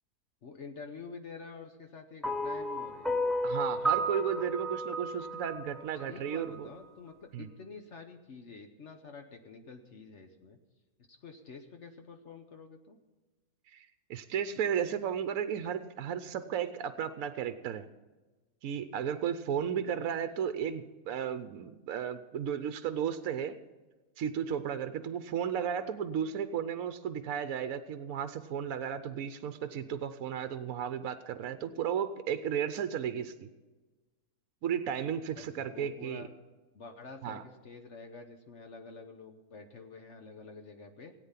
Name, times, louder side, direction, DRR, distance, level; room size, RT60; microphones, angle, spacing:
voice 1, 0.4-3.1 6.0-10.6 11.1-13.0 35.3-36.3 36.7-41.1, left 4 dB, 55° left, 5 dB, 1.2 m, -48 dB
sound 1, 2.2-6.6, right 1 dB, ahead, 0.5 m, -33 dB
voice 2, 3.4-6.7 7.3-7.5 13.7-17.9 18.6-23.5 24.2-33.5 34.6-36.3 37.2-37.4, right 8 dB, 70° right, 10 dB, 1.1 m, -34 dB
17.0 x 9.0 x 5.7 m, 1.2 s
omnidirectional pair, 1.5 m